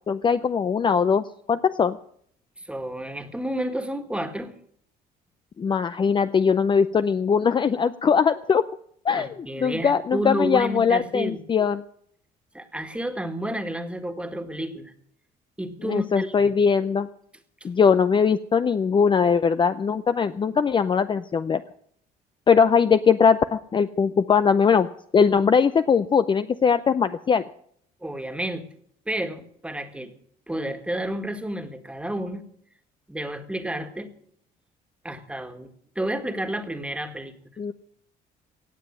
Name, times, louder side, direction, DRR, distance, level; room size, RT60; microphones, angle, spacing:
voice 1, 0.1-2.0 5.6-8.6 9.0-11.8 15.8-17.1 17.6-21.6 22.5-24.9 25.1-27.4 37.6-37.7, left 6 dB, 30° left, 12 dB, 0.5 m, -21 dB
voice 2, 2.6-4.5 9.2-11.4 12.5-14.9 15.6-16.5 28.0-28.7 29.1-30.1 30.5-32.4 33.1-34.1 35.0-35.7 36.0-37.3, right 1 dB, 5° right, 8 dB, 1.8 m, -30 dB
18.0 x 7.5 x 8.8 m, 0.66 s
cardioid pair, 110°, 17 cm